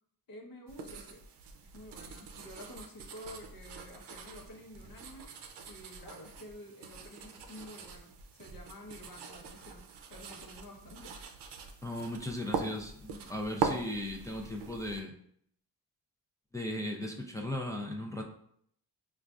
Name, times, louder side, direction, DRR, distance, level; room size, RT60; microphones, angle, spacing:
voice 1, 0.3-1.2 1.7-5.3 5.6-8.1 8.4-9.8 10.1-11.2, left 1 dB, 55° left, 1 dB, 0.9 m, -50 dB
sound 1, 0.7-15.0, right 5 dB, 80° right, 0.5 m, -42 dB
voice 2, 11.8-15.1 16.5-18.2, left 1 dB, 10° left, 0 dB, 0.4 m, -37 dB
4.9 x 2.4 x 2.3 m, 0.67 s
cardioid pair, 75°, 40 cm